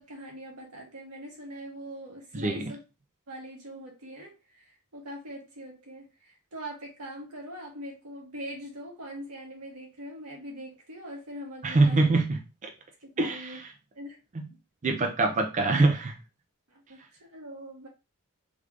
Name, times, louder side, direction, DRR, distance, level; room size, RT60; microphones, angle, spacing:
voice 1, 0.0-2.8 3.3-12.1 13.0-13.6 13.9-14.2 16.7-17.9, equal, 85° right, 1.4 m, -42 dB
voice 2, 2.3-2.7 11.6-12.7 13.2-13.6 14.4-14.5 14.8-16.2, right 2 dB, 35° right, 0.4 m, -24 dB
3.3 x 3.3 x 2.4 m
head